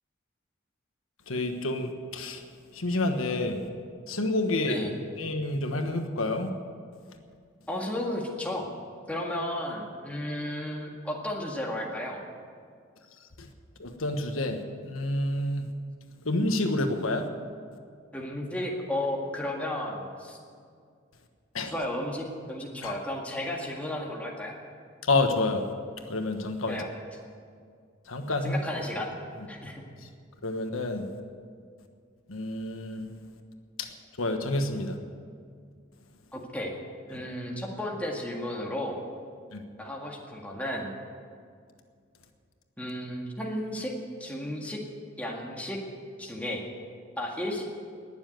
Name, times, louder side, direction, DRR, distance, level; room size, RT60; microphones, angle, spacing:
voice 1, 1.3-2.4 2.7-3.6 4.1-4.8 5.2-6.5 13.8-14.6 14.8-15.7 16.2-17.3 21.5-21.7 22.8-22.9 25.1-25.6 26.1-26.8 28.1-28.6 30.4-31.0 32.3-33.1 33.8-33.9 34.2-35.0 39.5-39.6, left 2 dB, 85° left, 6 dB, 1.3 m, -28 dB
voice 2, 4.6-5.0 7.7-8.6 9.1-12.2 18.1-20.4 21.6-24.5 26.7-26.9 28.4-29.1 29.5-29.8 36.3-36.7 37.1-39.0 39.8-41.0 42.8-43.9 44.2-44.8 45.2-45.8 46.2-46.7 47.2-47.7, left 1 dB, 5° left, -1 dB, 1.9 m, -33 dB
20.0 x 7.2 x 9.3 m, 2.2 s
head